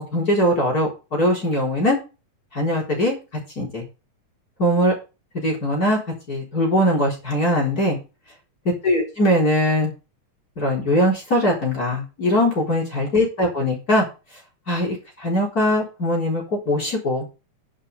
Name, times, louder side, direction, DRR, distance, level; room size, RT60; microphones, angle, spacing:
voice 1, 0.1-2.0 2.5-3.1 3.6-3.8 4.6-4.9 5.3-6.0 6.3-8.0 8.8-9.9 10.6-14.1 14.7-17.3, left 1 dB, 30° left, -1 dB, 4.1 m, -21 dB
10.5 x 10.0 x 3.4 m, 0.30 s
omnidirectional pair, 3.6 m